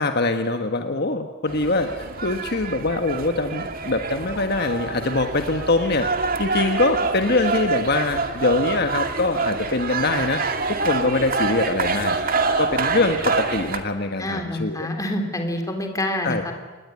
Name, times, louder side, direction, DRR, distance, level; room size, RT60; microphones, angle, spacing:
voice 1, 0.0-10.4 10.7-14.9 16.2-16.4, left 2 dB, 55° left, 6 dB, 1.5 m, -23 dB
sound 1, 1.5-13.8, right 4 dB, 50° right, 2.2 m, -26 dB
voice 2, 14.2-16.5, left 1 dB, 20° left, 4 dB, 3.5 m, -27 dB
28.0 x 20.5 x 9.7 m, 1.4 s
head